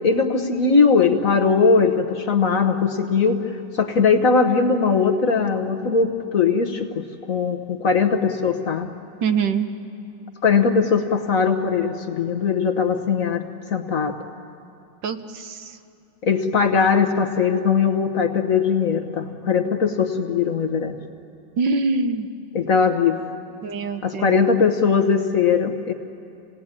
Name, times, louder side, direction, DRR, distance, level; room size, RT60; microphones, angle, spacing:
voice 1, 0.0-3.4 3.7-8.9 10.4-13.4 13.7-14.1 16.2-20.9 22.5-23.2 24.0-25.9, left 5 dB, 50° left, 5 dB, 1.3 m, -20 dB
voice 2, 9.2-9.7 15.0-15.8 21.6-22.3 23.6-24.4, right 4 dB, 70° right, 8 dB, 1.6 m, -24 dB
28.0 x 18.0 x 9.7 m, 2.6 s
omnidirectional pair, 2.1 m